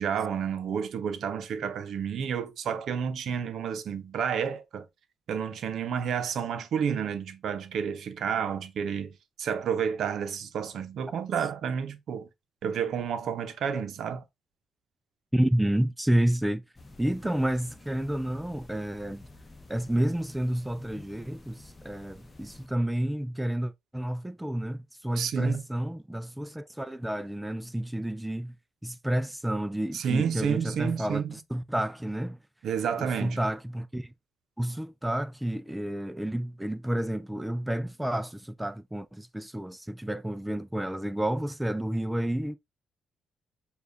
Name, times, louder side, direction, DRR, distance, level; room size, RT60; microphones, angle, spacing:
voice 1, 0.0-4.9 5.3-12.3 12.6-14.2 25.2-25.6 29.9-31.3 32.6-33.4, right 7 dB, 70° right, 0.6 m, -30 dB
voice 2, 15.3-16.6 17.0-19.2 19.7-28.5 28.8-32.4 33.0-34.1 34.6-42.6, right 1 dB, 5° right, 0.3 m, -30 dB
sound 1, 16.7-22.7, left 2 dB, 25° left, 0.9 m, -50 dB
6.8 x 2.3 x 2.6 m
cardioid pair, 90°, 0 cm